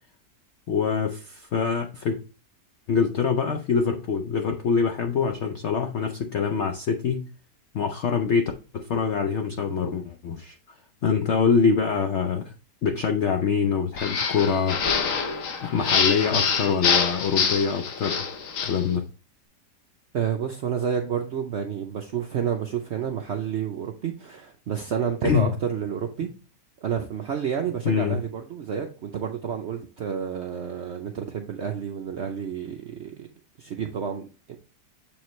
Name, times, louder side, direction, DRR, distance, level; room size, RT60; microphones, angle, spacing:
voice 1, 0.7-2.2 2.9-7.2 7.7-10.6 11.0-12.5 12.8-15.1 15.6-18.2 18.6-19.1 25.2-25.5 27.8-28.2, left 6 dB, 75° left, 5 dB, 0.6 m, -24 dB
sound 1, 14.0-18.8, left 6 dB, 55° left, 1.1 m, -25 dB
voice 2, 20.1-26.3 26.8-33.3 33.6-34.6, right 8 dB, 70° right, 4 dB, 0.6 m, -30 dB
7.3 x 4.7 x 3.1 m, 0.36 s
omnidirectional pair, 1.8 m